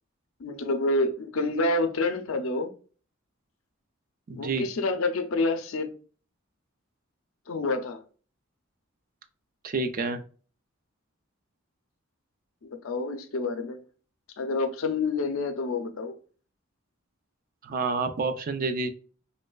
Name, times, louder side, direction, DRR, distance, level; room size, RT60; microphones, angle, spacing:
voice 1, 0.4-2.7 4.4-5.9 7.5-8.0 12.6-13.8 14.4-16.1, left 2 dB, 80° left, 0.5 m, -28 dB
voice 2, 4.3-4.7 9.6-10.2 17.6-18.9, right 3 dB, 45° right, 0.4 m, -28 dB
3.2 x 3.1 x 2.2 m
head